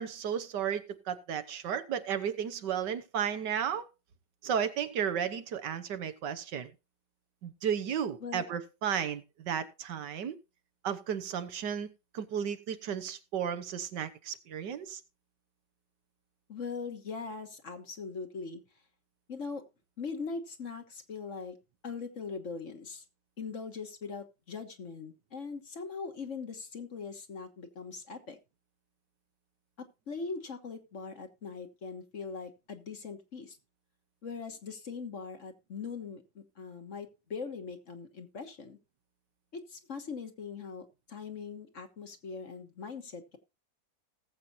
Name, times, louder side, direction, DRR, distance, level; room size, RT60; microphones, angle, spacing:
voice 1, 0.0-3.9 4.4-6.7 7.4-10.4 10.8-11.9 12.1-15.0, right 8 dB, 85° right, 1.7 m, -33 dB
voice 2, 16.5-18.6 19.3-19.6 20.0-21.6 21.8-23.0 23.4-28.4 29.8-33.6 34.2-38.8 39.5-43.4, left 5 dB, 50° left, 1.6 m, -41 dB
19.0 x 7.7 x 2.7 m
omnidirectional pair, 1.8 m